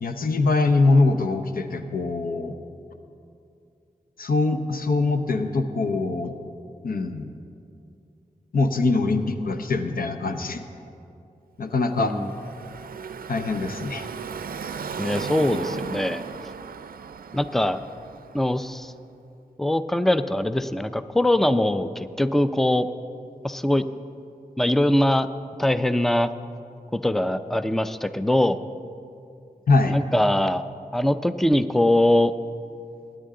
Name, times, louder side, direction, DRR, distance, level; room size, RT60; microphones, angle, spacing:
voice 1, 0.0-2.5 4.2-6.4 6.8-7.3 8.5-10.6 11.6-12.2 13.3-14.1 29.7-30.0, left 3 dB, 75° left, 7 dB, 0.8 m, -23 dB
Car passing by / Traffic noise roadway noise, 11.9-18.9, right 6 dB, 75° right, 0.4 m, -36 dB
voice 2, 12.0-12.3 15.0-16.2 17.3-17.8 18.3-18.9 19.6-22.9 23.4-23.8 24.6-25.3 25.6-26.3 26.9-28.6 29.9-30.6 30.9-32.3, left 1 dB, ahead, 11 dB, 0.4 m, -22 dB
22.0 x 9.9 x 3.8 m, 2.6 s
wide cardioid pair, 85°, 15 cm